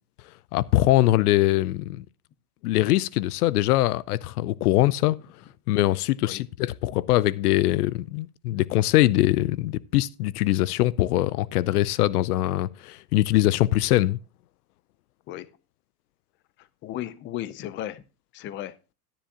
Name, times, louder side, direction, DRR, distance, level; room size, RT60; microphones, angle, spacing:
voice 1, 0.5-2.0 2.6-5.2 5.7-14.2, left 16 dB, 75° left, 0.6 m, -22 dB
voice 2, 16.6-18.0 18.3-18.8, left 13 dB, 25° left, 0.6 m, -35 dB
12.5 x 10.0 x 2.8 m
supercardioid pair, 125°, 46 cm